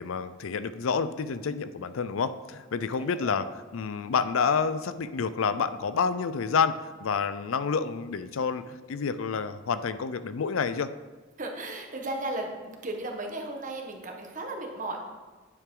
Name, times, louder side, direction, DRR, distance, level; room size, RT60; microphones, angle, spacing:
voice 1, 0.0-3.5 3.7-10.9, left 5 dB, 80° left, 13 dB, 0.5 m, -29 dB
voice 2, 3.0-3.4 11.4-15.0, right 2 dB, 40° right, 2 dB, 1.3 m, -35 dB
9.7 x 7.6 x 3.8 m, 1.3 s
head